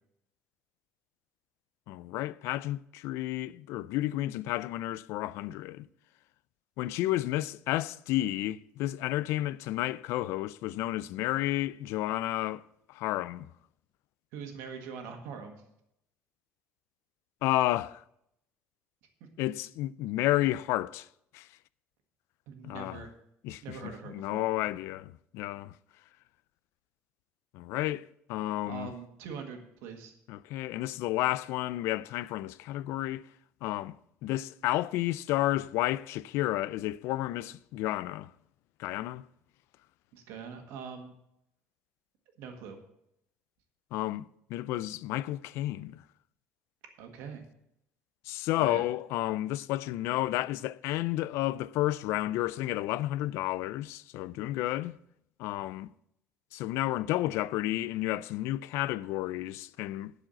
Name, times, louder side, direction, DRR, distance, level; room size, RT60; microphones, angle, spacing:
voice 1, 1.9-5.9 6.8-12.6 12.9-13.5 17.4-18.0 19.4-21.1 21.3-21.5 22.6-23.0 23.4-25.7 27.5-28.9 30.3-33.2 33.6-34.0 34.2-38.3 38.8-39.2 43.9-46.0 48.3-55.0 55.4-55.9 56.5-60.3, left 15 dB, 70° left, 0.3 m, -31 dB
voice 2, 14.3-15.6 22.5-23.1 23.6-24.4 28.7-30.1 40.1-41.1 42.4-42.8 47.0-47.4 48.6-48.8, right 6 dB, 80° right, 1.6 m, -42 dB
11.5 x 4.9 x 7.7 m
cardioid pair, 175°, 5 cm